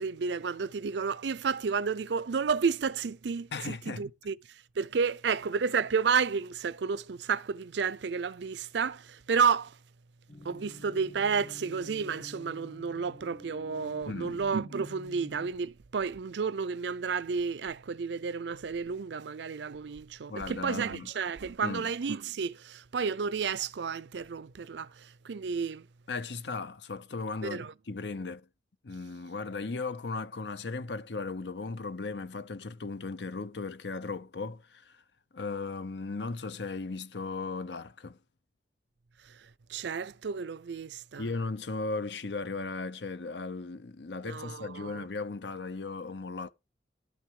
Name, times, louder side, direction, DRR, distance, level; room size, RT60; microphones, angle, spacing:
voice 1, 0.0-4.4 4.8-9.8 10.4-25.9 27.4-27.7 39.3-39.4 39.7-41.3 44.3-45.1, right 5 dB, 80° right, 0.5 m, -31 dB
voice 2, 3.5-4.1 14.1-14.4 20.3-21.1 21.6-21.9 26.1-28.5 28.8-35.0 35.3-38.2 41.2-46.5, left 3 dB, 75° left, 0.8 m, -37 dB
sound 1, 10.3-15.5, left 1 dB, 45° left, 3.2 m, -49 dB
12.0 x 6.1 x 4.7 m
head